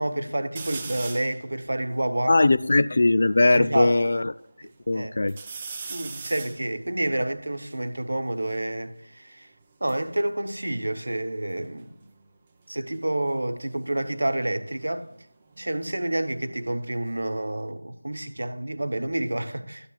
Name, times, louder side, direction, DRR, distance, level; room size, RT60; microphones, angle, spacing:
voice 1, 0.0-2.4 3.5-3.9 4.9-5.1 5.9-9.5 9.8-11.9 12.7-15.0 15.6-19.9, right 1 dB, 60° right, 1.0 m, -29 dB
sound 1, 0.6-1.4 2.0-2.1 2.2-3.8 4.3-4.9 5.3-8.7 9.6-11.5 11.8-12.3 13.8-16.5 16.8-17.6, right 4 dB, 10° right, 0.6 m, -42 dB
voice 2, 2.3-4.3 4.9-5.4, left 2 dB, 40° left, 0.3 m, -20 dB
13.0 x 9.9 x 2.3 m
figure-of-eight pair, 175°, 0 cm